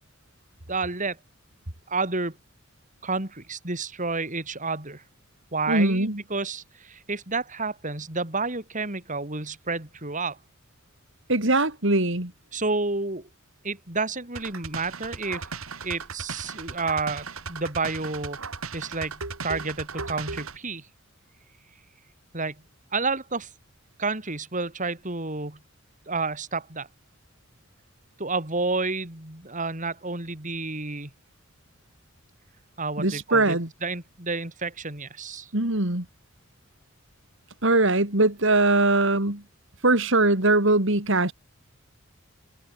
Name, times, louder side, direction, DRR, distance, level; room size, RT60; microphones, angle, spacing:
voice 1, 0.7-1.2 1.9-2.4 3.0-5.0 5.5-10.4 12.5-13.3 13.6-15.5 15.8-18.4 18.7-20.9 22.3-22.6 22.9-23.5 24.0-25.6 26.1-26.9 28.2-31.1 32.8-35.5, right 3 dB, 40° right, 4.4 m, -30 dB
voice 2, 5.7-6.2 11.3-12.3 33.0-33.7 35.5-36.1 37.6-39.4 39.8-41.3, right 2 dB, 65° right, 3.7 m, -21 dB
sound 1, 14.4-20.6, right 4 dB, 90° right, 3.6 m, -36 dB
head